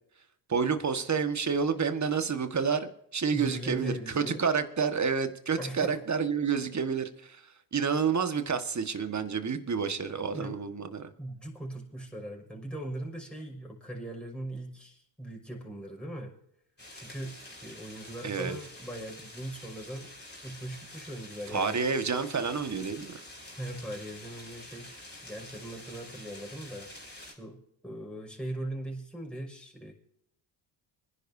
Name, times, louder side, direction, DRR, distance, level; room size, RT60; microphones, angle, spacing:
voice 1, 0.5-11.1 18.2-18.6 21.5-23.2, right 6 dB, 35° right, 8 dB, 1.7 m, -29 dB
voice 2, 3.3-4.4 5.6-6.0 10.3-10.5 11.2-16.3 16.9-20.1 20.4-21.8 23.5-26.9 27.2-27.6 27.8-29.9, right 1 dB, ahead, -2 dB, 5.9 m, -40 dB
sound 1, 16.8-27.3, left 1 dB, 20° left, 5.0 m, -48 dB
25.0 x 11.0 x 2.8 m, 0.72 s
supercardioid pair, 70°, 50 cm